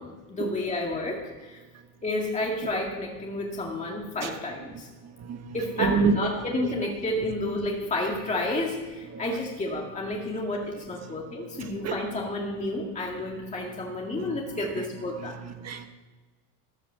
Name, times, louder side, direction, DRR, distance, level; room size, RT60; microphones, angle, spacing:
voice 1, 0.0-1.6 2.0-4.9 5.5-15.4, left 2 dB, 15° left, -1 dB, 2.2 m, -31 dB
voice 2, 5.3-6.7 9.1-9.4 11.6-12.0 14.3-14.9 15.1-15.9, right 5 dB, 30° right, 7 dB, 1.2 m, -30 dB
13.5 x 11.0 x 7.5 m, 1.3 s
supercardioid pair, 135°, 50 cm